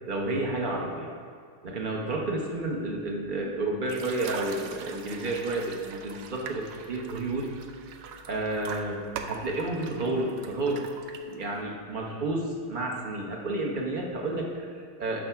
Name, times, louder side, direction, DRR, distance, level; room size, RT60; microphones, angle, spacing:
voice 1, 0.1-1.1 1.6-7.6 8.3-10.9 11.2-15.2, right 2 dB, 50° right, 0 dB, 0.6 m, -31 dB
sound 1, 3.9-11.6, right 6 dB, 80° right, 0.9 m, -42 dB
12.0 x 4.1 x 5.7 m, 2.1 s
omnidirectional pair, 2.3 m